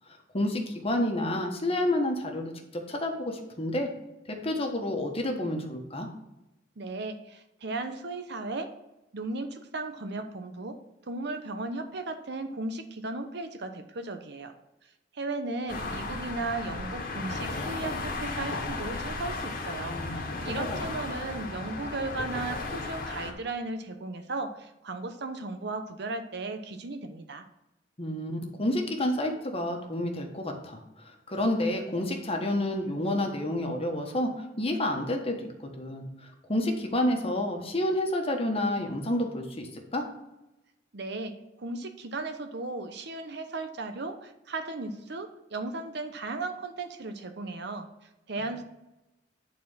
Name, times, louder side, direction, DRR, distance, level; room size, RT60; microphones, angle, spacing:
voice 1, 0.3-3.9 4.3-6.1 19.9-20.1 20.6-20.8 28.0-30.8 31.3-34.3 34.6-35.3 35.8-36.0 36.5-40.0, left 1 dB, 30° left, 2 dB, 1.3 m, -29 dB
voice 2, 6.8-8.7 9.1-10.8 11.0-14.5 15.1-27.4 40.9-47.9 48.3-48.6, right 3 dB, 65° right, 8 dB, 0.8 m, -36 dB
sound 1, 15.7-23.3, left 3 dB, 55° left, 1.5 m, -35 dB
10.0 x 4.3 x 5.6 m, 0.94 s
head